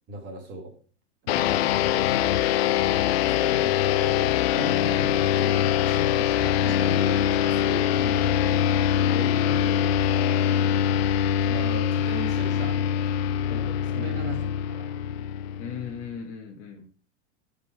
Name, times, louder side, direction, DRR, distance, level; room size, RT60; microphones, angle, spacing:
voice 1, 0.1-0.7 3.3-8.5 11.4-12.8 13.9-14.9, right 1 dB, 30° right, 1 dB, 3.1 m, -37 dB
sound 1, 1.3-16.1, left 10 dB, 60° left, 0.7 m, -23 dB
voice 2, 9.0-10.3 13.5-13.8 15.6-16.9, left 6 dB, 35° left, 0 dB, 1.6 m, -38 dB
9.6 x 5.5 x 4.8 m, 0.43 s
supercardioid pair, 150°, 35 cm